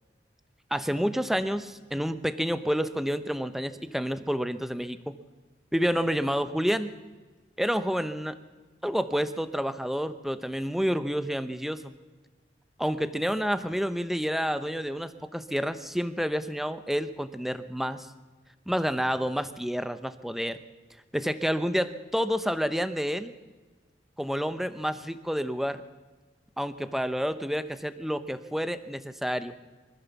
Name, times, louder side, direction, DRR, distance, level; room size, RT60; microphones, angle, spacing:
voice 1, 0.7-5.2 5.7-7.0 7.6-8.4 8.8-11.9 12.8-18.1 18.7-20.6 21.1-23.3 24.2-25.8 26.6-29.5, equal, ahead, 11 dB, 0.8 m, -29 dB
24.0 x 15.0 x 7.2 m, 1.3 s
head